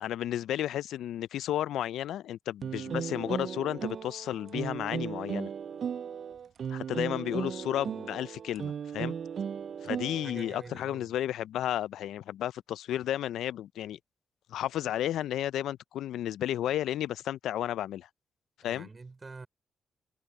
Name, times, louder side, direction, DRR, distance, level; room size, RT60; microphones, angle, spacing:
voice 1, 0.0-5.5 6.7-9.1 9.8-14.0 14.5-18.1 18.6-18.9, left 12 dB, 85° left, 0.3 m, -33 dB
sound 1, 2.6-10.7, right 7 dB, 65° right, 0.3 m, -36 dB
voice 2, 10.0-11.1 18.6-19.5, right 3 dB, 35° right, 4.3 m, -47 dB
supercardioid pair, 55°, 0 cm